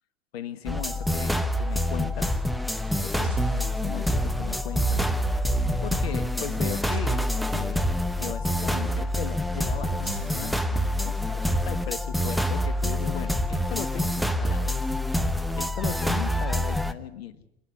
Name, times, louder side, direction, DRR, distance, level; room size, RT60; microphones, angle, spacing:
voice 1, 0.3-2.4 3.0-5.1 5.8-14.9 15.6-17.4, left 9 dB, 75° left, 12 dB, 1.6 m, -38 dB
sound 1, 0.7-16.9, equal, ahead, 1.0 m, -26 dB
sound 2, 3.2-4.5 6.9-8.2 10.0-11.3, right 4 dB, 85° right, 2.7 m, -42 dB
27.5 x 11.0 x 9.7 m, 0.84 s
hypercardioid pair, 85°, 31 cm